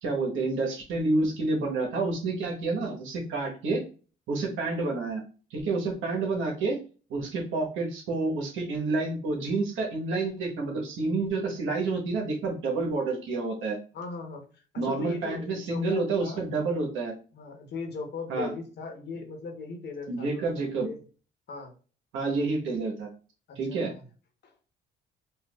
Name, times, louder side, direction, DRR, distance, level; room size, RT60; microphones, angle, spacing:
voice 1, 0.0-3.8 4.3-5.2 5.5-6.8 7.1-13.8 14.8-17.1 18.3-18.5 20.1-20.9 22.1-23.1 23.6-23.9, right 3 dB, 85° right, 0 dB, 1.3 m, -29 dB
voice 2, 13.9-16.5 17.3-21.0 21.5-21.7 23.5-24.0 24.4-24.5, left 4 dB, 60° left, 3 dB, 1.1 m, -39 dB
4.6 x 2.6 x 2.4 m, 0.37 s
cardioid pair, 90°, 20 cm